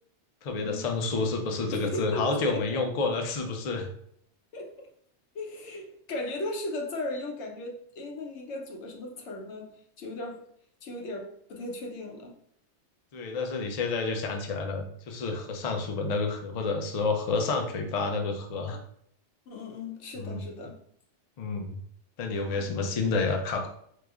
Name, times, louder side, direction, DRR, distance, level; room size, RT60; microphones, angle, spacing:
voice 1, 0.4-3.9 13.1-18.8 20.2-20.4 21.4-21.8 22.2-23.7, left 3 dB, 55° left, 3 dB, 0.4 m, -29 dB
voice 2, 1.7-2.8 4.5-4.9 5.3-10.4 10.8-12.4 19.5-20.8 22.6-22.7, left 2 dB, 85° left, 2 dB, 1.0 m, -37 dB
4.7 x 2.0 x 2.3 m, 0.68 s
omnidirectional pair, 1.2 m